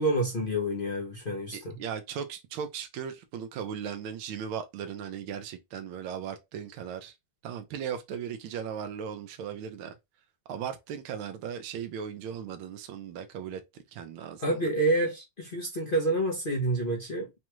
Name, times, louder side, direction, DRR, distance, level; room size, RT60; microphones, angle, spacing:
voice 1, 0.0-1.8 14.4-17.4, right 1 dB, 45° left, 0.7 m, -28 dB
voice 2, 1.5-7.1 7.4-9.9 10.5-14.6, right 8 dB, 80° right, 1.5 m, -37 dB
5.2 x 2.4 x 3.0 m
omnidirectional pair, 2.3 m